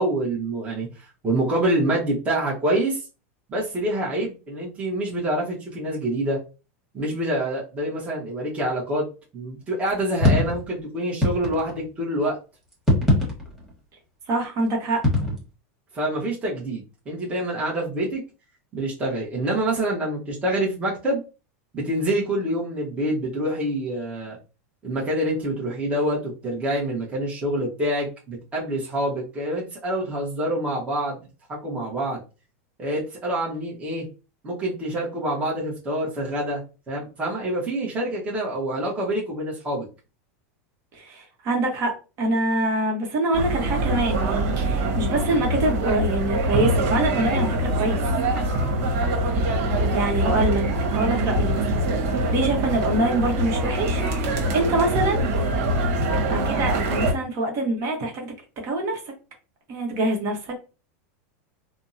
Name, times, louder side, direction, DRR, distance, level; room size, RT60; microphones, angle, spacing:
voice 1, 0.0-3.0 3.5-6.4 6.9-9.1 9.3-12.4 15.9-18.2 18.7-21.2 21.7-24.4 24.8-31.2 31.5-32.2 32.8-34.1 34.4-36.6 36.9-39.9, right 1 dB, 15° right, -3 dB, 0.9 m, -26 dB
sound 1, 9.9-10.6 11.2-11.9 12.7-13.7 15.0-15.4, left 1 dB, ahead, 1.3 m, -21 dB
voice 2, 14.3-15.0 40.9-41.9 42.2-48.0 48.5-48.6 49.9-50.6 50.9-51.9 52.3-55.3 56.1-58.3 58.6-59.0 59.7-60.6, right 2 dB, 40° right, 1 dB, 1.0 m, -25 dB
sound 2, 43.3-57.1, right 1 dB, 70° right, 1.1 m, -24 dB
3.4 x 2.0 x 2.6 m, 0.32 s
supercardioid pair, 140°, 8 cm